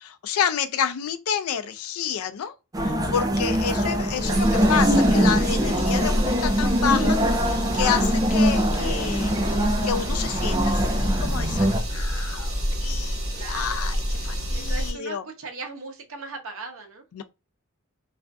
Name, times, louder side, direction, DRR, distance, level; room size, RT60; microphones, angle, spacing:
voice 1, 0.0-2.5 2.8-7.2 7.5-9.4 9.8-15.2 17.1-17.2, left 8 dB, 80° left, 0.4 m, -29 dB
sound 1, 2.7-11.8, equal, 15° right, 0.4 m, -23 dB
sound 2, 4.2-14.9, equal, 45° right, 1.0 m, -28 dB
voice 2, 13.3-13.9 14.5-17.0, right 3 dB, 70° right, 0.7 m, -38 dB
2.5 x 2.4 x 2.2 m
head